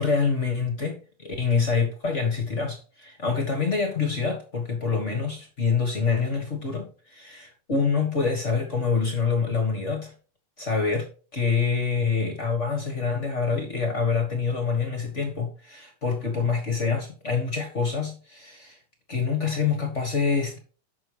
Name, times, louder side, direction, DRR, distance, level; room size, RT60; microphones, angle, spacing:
voice 1, 0.0-10.1 10.6-18.8 19.1-20.6, left 5 dB, 35° left, 3 dB, 1.3 m, -26 dB
10.5 x 6.8 x 3.4 m, 0.38 s
omnidirectional pair, 3.7 m